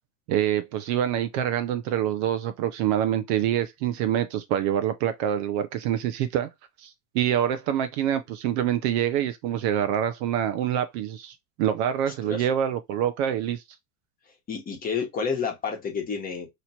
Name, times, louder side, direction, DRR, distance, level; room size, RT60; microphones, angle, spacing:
voice 1, 0.3-6.5 6.8-13.6, right 10 dB, 50° right, 0.6 m, -26 dB
voice 2, 14.5-16.5, left 5 dB, 20° left, 1.2 m, -30 dB
3.0 x 2.5 x 4.2 m
supercardioid pair, 135°, 45 cm